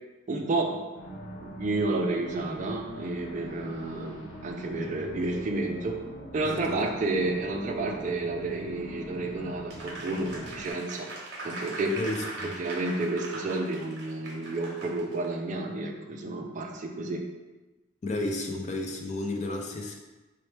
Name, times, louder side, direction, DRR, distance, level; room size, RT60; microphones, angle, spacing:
voice 1, 0.3-0.9 1.4-6.0 6.3-11.1 11.4-12.0 12.4-17.2, right 2 dB, 40° right, 2 dB, 0.3 m, -31 dB
sound 1, 0.9-10.7, equal, 85° left, 1.0 m, -42 dB
voice 2, 6.4-6.8 12.0-12.6 18.0-20.0, left 2 dB, 35° left, 2 dB, 0.4 m, -32 dB
Applause, 9.7-15.3, right 2 dB, 60° right, 0.7 m, -40 dB
4.1 x 2.1 x 3.2 m, 1.1 s
head